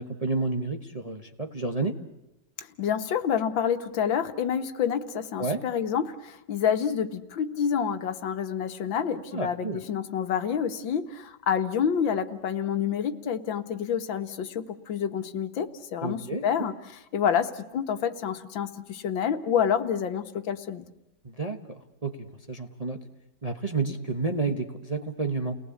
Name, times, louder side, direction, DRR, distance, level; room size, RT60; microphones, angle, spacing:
voice 1, 0.0-2.0 5.4-5.6 9.3-9.8 16.0-16.7 21.2-23.0 23.4-25.5, right 3 dB, 25° right, 5 dB, 1.0 m, -30 dB
voice 2, 2.6-16.7 17.1-20.8, left 8 dB, 75° left, 9 dB, 1.9 m, -28 dB
30.0 x 19.0 x 8.4 m, 0.94 s
omnidirectional pair, 2.1 m